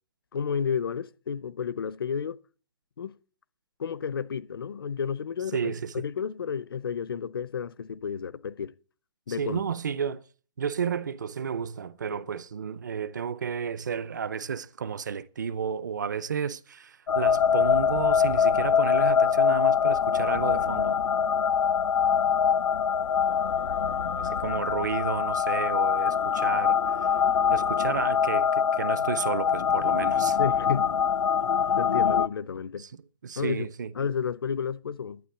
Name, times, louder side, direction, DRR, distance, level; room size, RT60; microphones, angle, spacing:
voice 1, 0.3-2.4 3.0-3.1 3.8-8.7 9.3-9.6 30.4-30.9 31.8-32.8 33.4-33.7 34.0-35.2, left 7 dB, 45° left, 0.5 m, -31 dB
voice 2, 5.5-6.0 9.4-10.2 10.6-21.0 24.2-26.8 27.5-30.4 32.8-33.9, right 7 dB, 35° right, 0.6 m, -32 dB
sound 1, 17.1-32.3, left 7 dB, 90° left, 0.6 m, -24 dB
12.0 x 9.4 x 8.3 m
hypercardioid pair, 180°, 17 cm